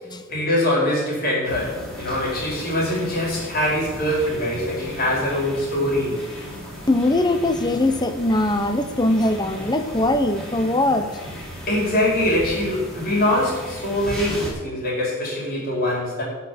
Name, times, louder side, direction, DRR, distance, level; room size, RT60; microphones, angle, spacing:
voice 1, 0.3-6.2 11.7-16.2, left 1 dB, 45° left, -4 dB, 4.7 m, -23 dB
sound 1, 1.4-14.5, equal, 5° left, 3.7 m, -36 dB
voice 2, 6.9-11.1, left 1 dB, 20° left, 8 dB, 0.8 m, -21 dB
12.5 x 6.8 x 7.7 m, 1.3 s
head